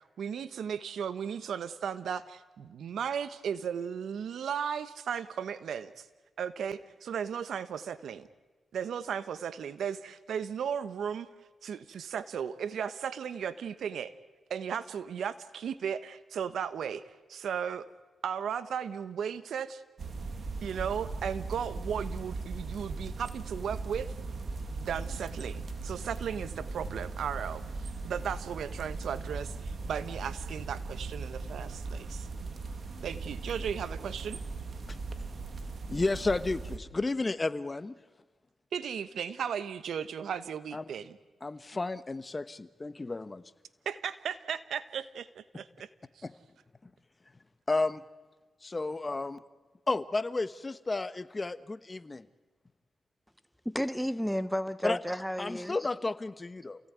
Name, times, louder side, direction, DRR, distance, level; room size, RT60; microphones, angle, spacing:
voice 1, 0.2-6.0 6.4-8.3 8.7-11.3 11.6-14.1 14.5-17.9 18.2-19.8 20.6-24.1 24.8-27.6 28.0-32.3 33.0-34.4 38.7-41.2 43.8-45.9 46.2-46.3, right 7 dB, 80° right, 14 dB, 1.1 m, -36 dB
sound 1, 20.0-36.8, right 3 dB, 60° right, 2.4 m, -39 dB
voice 2, 35.9-37.9 40.7-40.8 41.4-43.4 46.2-46.3 47.7-48.0 48.6-49.4 49.9-52.2 54.8-55.0 55.4-56.8, left 3 dB, 30° left, 13 dB, 1.3 m, -32 dB
voice 3, 53.6-55.8, equal, ahead, 13 dB, 0.9 m, -32 dB
28.5 x 17.5 x 9.4 m, 1.3 s
cardioid pair, 55°, 0 cm